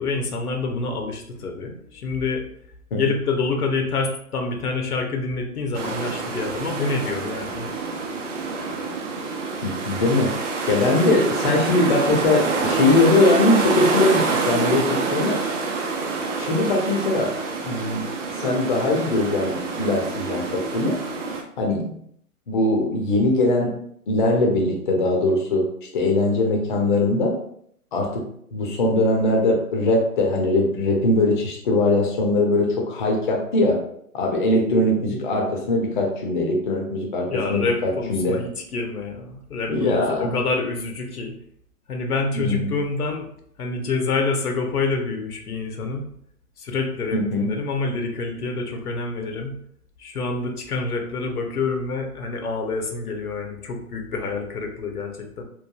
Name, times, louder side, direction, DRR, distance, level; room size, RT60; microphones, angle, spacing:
voice 1, 0.0-2.5 2.9-7.7 37.3-41.4 41.9-43.3 43.6-46.1 46.6-49.6 50.0-55.4, left 3 dB, 80° left, 4 dB, 0.7 m, -27 dB
sound 1, 5.7-21.4, right 4 dB, 55° right, 0.6 m, -27 dB
voice 2, 9.6-10.3 10.7-15.4 16.4-17.3 17.6-18.0 18.4-21.0 21.6-22.0 22.5-23.7 24.1-25.6 25.9-27.3 27.9-28.2 28.5-33.8 34.1-38.4 39.7-40.4 42.3-42.7 47.1-47.5, left 2 dB, 35° left, 0 dB, 0.5 m, -21 dB
3.0 x 2.2 x 2.2 m, 0.67 s
figure-of-eight pair, 130°, 45 cm